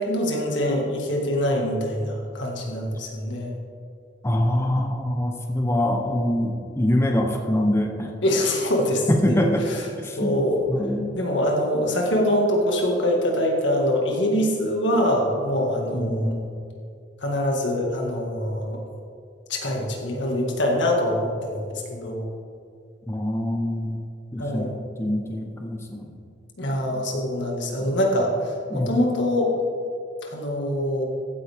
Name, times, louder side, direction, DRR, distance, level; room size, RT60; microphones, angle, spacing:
voice 1, 0.0-3.5 8.2-9.4 9.7-9.8 10.2-10.6 11.1-16.4 17.2-18.8 19.5-22.3 24.4-24.8 26.6-29.5 30.2-31.1, left 1 dB, 80° left, 0 dB, 1.9 m, -24 dB
voice 2, 4.2-8.1 9.1-9.7 10.0-10.3 10.7-11.1 15.9-16.6 23.1-24.0 24.3-26.2 26.9-27.0 27.8-28.0 28.7-28.9, left 1 dB, 15° left, 2 dB, 0.8 m, -24 dB
15.0 x 9.0 x 3.6 m, 2.4 s
head